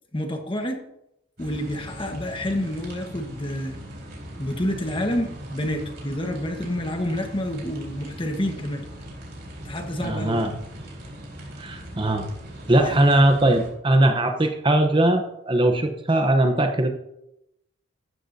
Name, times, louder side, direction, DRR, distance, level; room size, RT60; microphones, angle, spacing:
voice 1, 0.1-0.8 1.4-3.8 4.4-8.8 9.6-10.5 12.8-13.1, left 1 dB, 25° left, 4 dB, 1.4 m, -28 dB
sound 1, 1.4-13.7, equal, 55° right, 4.5 m, -39 dB
voice 2, 10.0-10.5 11.6-12.2 12.7-16.9, right 1 dB, 25° right, 5 dB, 0.9 m, -20 dB
14.5 x 13.0 x 2.8 m, 0.83 s
head